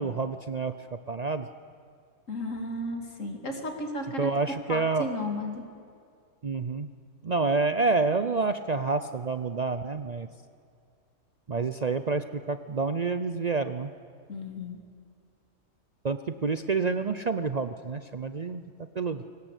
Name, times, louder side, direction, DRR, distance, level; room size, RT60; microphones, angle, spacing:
voice 1, 0.0-1.5 4.2-5.1 6.4-6.9 7.2-10.3 11.5-13.9 16.0-18.6 18.9-19.2, right 4 dB, 45° right, 10 dB, 0.6 m, -28 dB
voice 2, 2.3-5.7 14.3-14.8, left 1 dB, 75° left, 4 dB, 2.8 m, -34 dB
23.0 x 18.5 x 8.2 m, 2.3 s
omnidirectional pair, 1.3 m